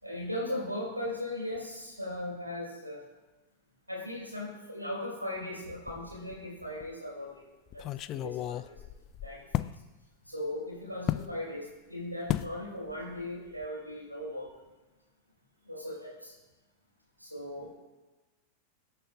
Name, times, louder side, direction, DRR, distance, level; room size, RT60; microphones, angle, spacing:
voice 1, 0.0-3.0 3.9-7.3 7.7-8.8 9.2-9.7 10.3-14.5 15.7-16.3 17.2-17.7, left 1 dB, 90° right, -3 dB, 4.7 m, -38 dB
sound 1, 5.9-6.4 6.8-6.9 7.7-9.8 11.1-11.3 12.3-12.6 12.9-13.2 13.5-13.6, left 13 dB, 35° left, 0.4 m, -34 dB
22.5 x 8.9 x 2.5 m, 1.1 s
figure-of-eight pair, 90°, 0 cm